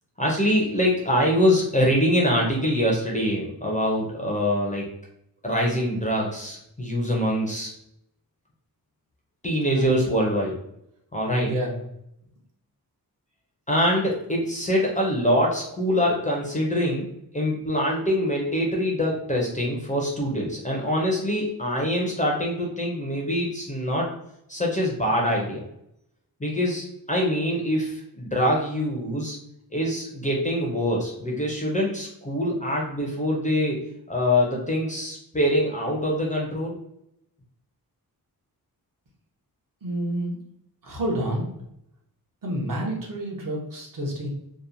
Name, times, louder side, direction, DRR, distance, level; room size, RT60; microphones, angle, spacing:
voice 1, 0.2-4.9 5.4-7.7 9.4-10.6 11.1-11.5 13.7-17.1 17.3-24.1 24.5-25.6 26.4-29.4 29.7-33.8 34.1-36.8, equal, 20° left, -2 dB, 0.4 m, -24 dB
voice 2, 11.4-11.8 39.8-40.4 40.8-41.5 42.4-44.3, right 1 dB, 60° right, -2 dB, 0.8 m, -29 dB
2.8 x 2.0 x 2.4 m, 0.78 s
wide cardioid pair, 175°, 38 cm